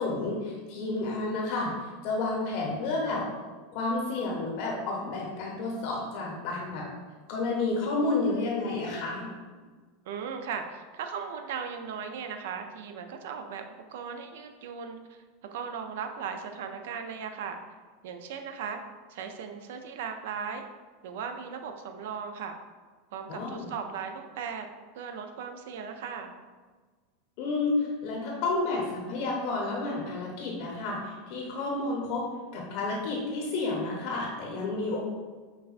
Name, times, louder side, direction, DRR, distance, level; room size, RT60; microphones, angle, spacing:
voice 1, 0.0-1.7 2.0-3.2 3.7-6.8 7.3-9.3 23.3-23.7 27.4-32.2 32.5-35.0, left 3 dB, 65° left, -2 dB, 0.7 m, -30 dB
voice 2, 10.1-13.6 13.9-15.2 15.5-17.6 18.0-18.8 19.1-20.7 21.0-22.6 23.1-24.7 24.9-26.3, right 6 dB, 75° right, 6 dB, 0.4 m, -37 dB
5.5 x 2.2 x 2.4 m, 1.4 s
hypercardioid pair, 100°, 0 cm